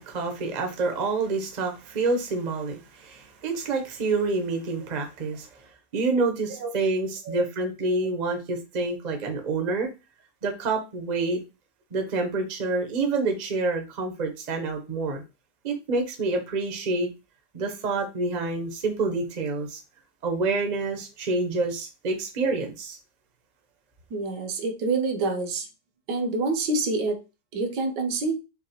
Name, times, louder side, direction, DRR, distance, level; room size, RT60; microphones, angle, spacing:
voice 1, 0.0-5.5 5.9-9.9 10.4-11.4 11.9-15.2 15.6-17.1 17.5-19.8 20.2-23.0, right 3 dB, 45° right, 0.5 m, -27 dB
voice 2, 24.1-25.7 26.1-27.2 27.5-28.3, right 3 dB, 75° right, 1.3 m, -27 dB
5.8 x 2.1 x 2.8 m
omnidirectional pair, 1.9 m